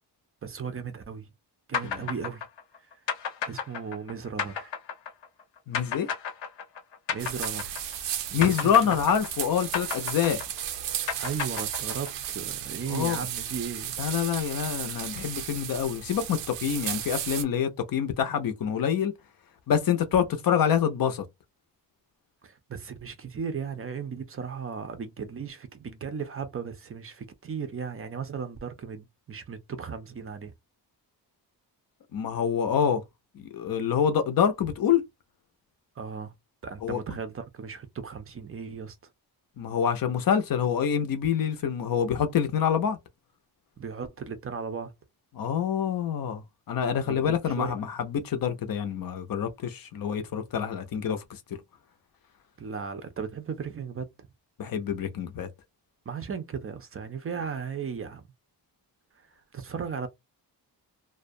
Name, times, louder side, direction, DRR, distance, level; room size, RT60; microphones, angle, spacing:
voice 1, 0.4-1.3 1.7-2.4 3.4-4.7 7.1-7.8 8.4-8.6 8.9-9.0 11.2-14.0 22.4-30.5 36.0-36.3 36.6-39.0 43.8-44.9 47.0-47.8 52.6-54.3 56.1-58.2 59.1-59.3 59.5-60.1, right 6 dB, 35° right, 0.5 m, -36 dB
sound 1, 1.7-8.1 8.4-12.3, left 7 dB, 80° left, 0.9 m, -33 dB
voice 2, 5.7-6.1 8.3-10.4 12.9-13.2 14.0-19.1 19.7-21.2 32.1-33.0 33.3-35.0 36.8-37.0 39.6-43.0 45.3-51.4 54.6-55.5, left 8 dB, 55° left, 0.6 m, -26 dB
sound 2, 7.2-17.4, right 10 dB, 90° right, 0.6 m, -35 dB
2.4 x 2.1 x 2.5 m
wide cardioid pair, 130°, 42 cm